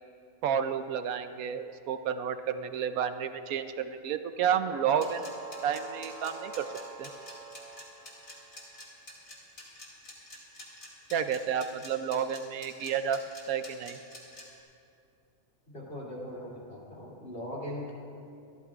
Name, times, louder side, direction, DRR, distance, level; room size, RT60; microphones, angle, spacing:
voice 1, 0.4-5.3 5.6-6.7 7.0-7.1 11.1-13.2 13.5-14.0, right 8 dB, 80° right, 10 dB, 1.1 m, -31 dB
sound 1, 4.7-8.7, right 3 dB, 30° right, 0.9 m, -45 dB
sound 2, 5.0-14.4, left 1 dB, 70° left, 2.8 m, -47 dB
voice 2, 15.7-17.9, left 1 dB, 40° left, -5 dB, 3.1 m, -40 dB
26.0 x 13.5 x 2.5 m, 2.6 s
omnidirectional pair, 1.5 m